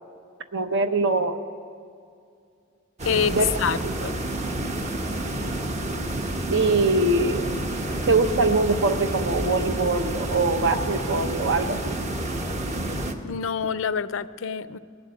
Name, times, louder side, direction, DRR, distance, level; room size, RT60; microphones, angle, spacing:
voice 1, 0.5-1.4 3.3-3.5 3.8-3.9 6.5-7.5 8.1-12.0, right 3 dB, 65° right, 8 dB, 1.0 m, -23 dB
voice 2, 3.0-4.2 13.2-14.8, left 7 dB, 70° left, 15 dB, 0.5 m, -26 dB
sound 1, 3.0-13.1, right 1 dB, 35° right, 1.0 m, -29 dB
19.5 x 7.4 x 9.0 m, 2.4 s
head